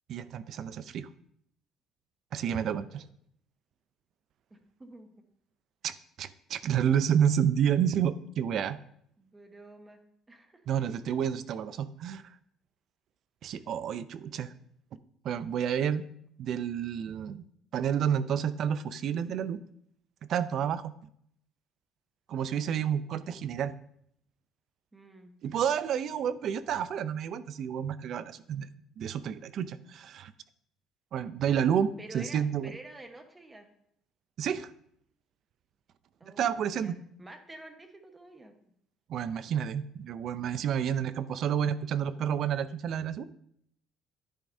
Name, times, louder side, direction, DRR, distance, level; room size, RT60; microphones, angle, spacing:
voice 1, 0.1-1.1 2.3-3.0 5.8-8.8 10.7-12.4 13.4-14.5 15.2-16.0 16.4-17.4 17.7-19.6 20.3-20.9 22.3-23.7 25.4-28.7 29.0-30.3 31.1-32.7 34.4-34.7 36.2-37.0 39.1-43.2, right 8 dB, 55° right, 15 dB, 0.5 m, -30 dB
voice 2, 2.4-2.9 4.5-5.2 9.2-10.0 10.3-10.7 22.8-23.6 24.9-25.3 32.0-33.7 36.2-38.5, right 2 dB, 15° right, 6 dB, 1.2 m, -50 dB
10.0 x 9.3 x 2.7 m, 0.69 s
cardioid pair, 125°, 0 cm